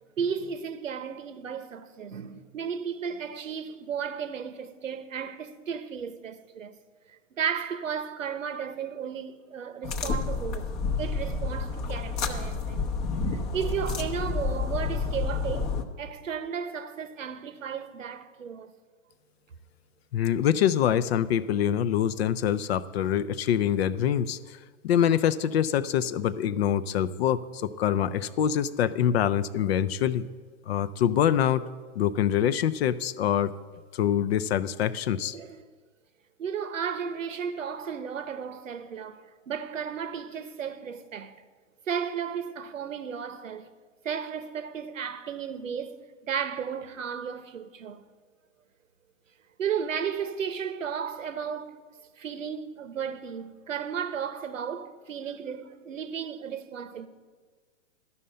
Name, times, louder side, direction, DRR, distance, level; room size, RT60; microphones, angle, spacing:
voice 1, 0.2-6.8 7.1-12.9 13.3-18.7 35.3-35.7 36.4-41.4 41.9-43.7 44.0-48.0 49.6-51.8 52.2-57.1, right 7 dB, 90° right, 0.9 m, -34 dB
sound 1, 9.8-15.8, left 4 dB, 25° left, 0.8 m, -30 dB
voice 2, 20.1-24.6 24.8-30.2 30.7-31.6 32.0-33.5 33.9-35.3, left 9 dB, 55° left, 0.6 m, -25 dB
12.0 x 5.7 x 7.6 m
hypercardioid pair, 130°, 38 cm